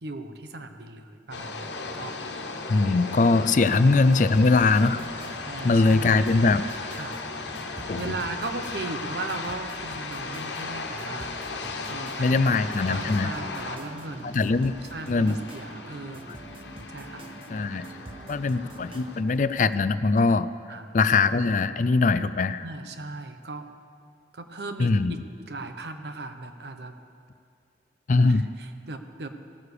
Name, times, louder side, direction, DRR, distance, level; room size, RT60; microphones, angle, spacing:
voice 1, 0.0-2.2 3.6-3.8 5.5-6.1 6.9-7.2 8.0-14.4 14.9-16.4 16.9-17.3 20.7-20.9 22.6-23.7 24.3-25.2 25.5-26.9 28.1-29.3, right 2 dB, 65° right, 8 dB, 1.0 m, -37 dB
sound 1, 1.3-19.2, left 3 dB, 80° left, 1.3 m, -36 dB
voice 2, 2.7-5.0 5.3-6.6 7.9-8.2 12.2-13.3 14.2-14.7 15.1-15.4 17.5-17.9 18.3-20.5 20.9-22.6 24.8-25.2 28.1-28.4, left 3 dB, 45° left, 14 dB, 0.4 m, -21 dB
sound 2, 4.0-19.7, right 2 dB, 30° right, 0.6 m, -47 dB
16.0 x 9.6 x 6.8 m, 2.4 s
head